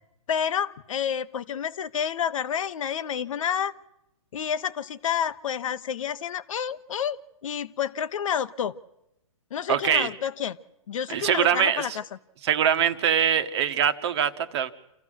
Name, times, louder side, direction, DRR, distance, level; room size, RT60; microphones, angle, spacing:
voice 1, 0.3-3.7 4.3-7.2 7.4-8.8 9.5-10.6 10.9-12.0, left 8 dB, 65° left, 13 dB, 1.0 m, -29 dB
voice 2, 9.7-10.1 11.1-12.0 12.4-14.7, right 9 dB, 50° right, 11 dB, 1.3 m, -23 dB
28.0 x 14.5 x 6.4 m, 0.87 s
hypercardioid pair, 140°, 18 cm